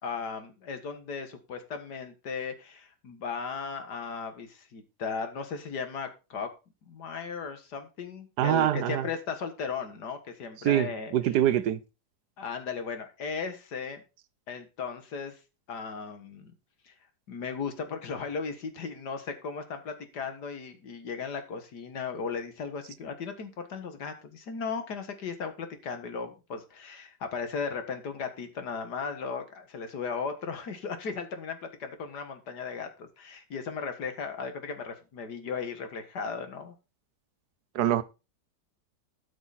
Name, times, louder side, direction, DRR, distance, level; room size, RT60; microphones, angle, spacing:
voice 1, 0.0-6.5 6.9-11.1 12.4-14.0 14.5-15.4 15.7-16.5 16.9-17.0 17.3-36.7, left 5 dB, 80° left, 2.1 m, -36 dB
voice 2, 8.4-9.1 10.6-11.8 37.7-38.0, right 11 dB, 80° right, 1.3 m, -24 dB
13.0 x 6.0 x 4.2 m
omnidirectional pair, 1.8 m